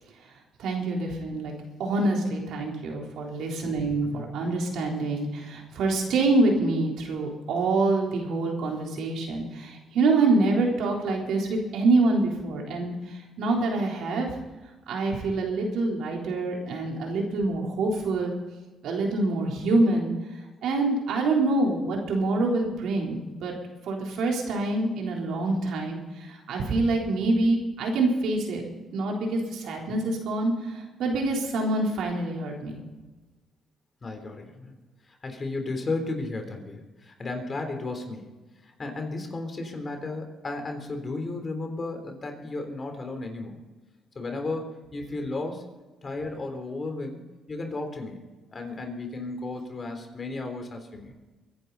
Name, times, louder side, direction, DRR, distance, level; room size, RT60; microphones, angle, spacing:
voice 1, 0.6-1.5 1.8-14.3 14.9-18.3 18.8-20.1 20.6-23.5 23.9-28.6 28.9-32.8, right 2 dB, 80° right, 0 dB, 3.7 m, -26 dB
voice 2, 34.0-34.7 35.0-38.3 38.6-43.6 44.2-45.7 46.0-47.2 47.5-51.1, left 2 dB, 35° left, 5 dB, 3.5 m, -34 dB
23.0 x 10.5 x 4.1 m, 1.2 s
cardioid pair, 90°, 0 cm